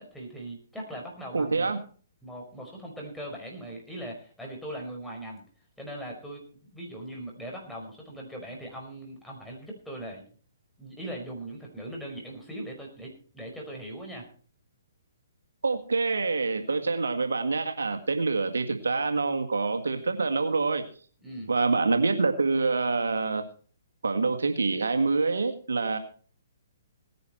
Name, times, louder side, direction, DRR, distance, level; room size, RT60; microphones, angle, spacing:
voice 1, 0.0-1.7 2.2-5.4 5.8-10.2 10.8-14.3 21.2-21.5, right 1 dB, 5° left, -1 dB, 5.4 m, -40 dB
voice 2, 1.3-1.8 15.6-20.9 21.5-23.5 24.0-26.0, right 4 dB, 80° right, 7 dB, 1.9 m, -26 dB
18.5 x 10.5 x 4.5 m, 0.43 s
hypercardioid pair, 135°, 0 cm